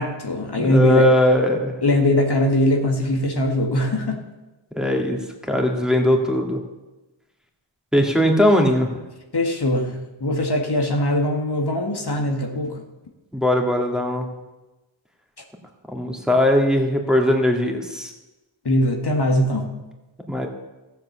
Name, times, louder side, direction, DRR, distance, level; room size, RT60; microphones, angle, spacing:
voice 1, 0.0-1.1 1.8-4.2 9.3-12.8 18.7-19.7, left 1 dB, 55° left, 2 dB, 1.9 m, -21 dB
voice 2, 0.6-1.8 4.7-5.2 5.5-6.6 7.9-8.9 13.3-14.3 15.9-18.1 20.3-20.5, left 1 dB, ahead, 1 dB, 2.6 m, -19 dB
14.5 x 7.7 x 7.3 m, 1.1 s
cardioid pair, 45°, 48 cm